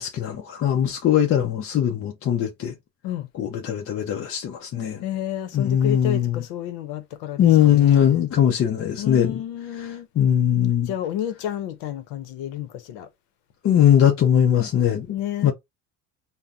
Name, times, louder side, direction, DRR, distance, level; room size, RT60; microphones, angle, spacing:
voice 1, 0.0-2.7 3.3-5.0 5.5-6.4 7.4-9.4 9.8-10.9 13.6-15.1 15.4-15.5, left 10 dB, 35° left, 0.6 m, -20 dB
voice 2, 5.0-8.2 9.0-10.1 10.8-13.1 15.1-15.5, left 11 dB, 80° left, 0.8 m, -31 dB
2.7 x 2.1 x 3.5 m
cardioid pair, 115°, 38 cm